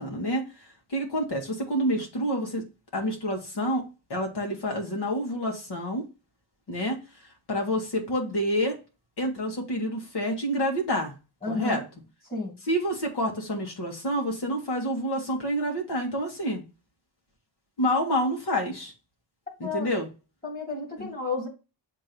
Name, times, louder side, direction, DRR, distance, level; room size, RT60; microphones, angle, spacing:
voice 1, 0.0-2.6 2.9-3.8 4.1-6.1 6.7-7.0 7.5-8.8 9.2-11.1 11.5-11.8 12.7-16.6 17.8-18.9 19.6-20.1 21.0-21.1, equal, 60° left, 1 dB, 2.0 m, -28 dB
voice 2, 11.4-11.8 12.3-12.5 19.6-19.9 20.4-21.5, left 3 dB, 20° left, 1 dB, 2.2 m, -31 dB
7.3 x 3.0 x 5.3 m, 0.30 s
wide cardioid pair, 150°, 44 cm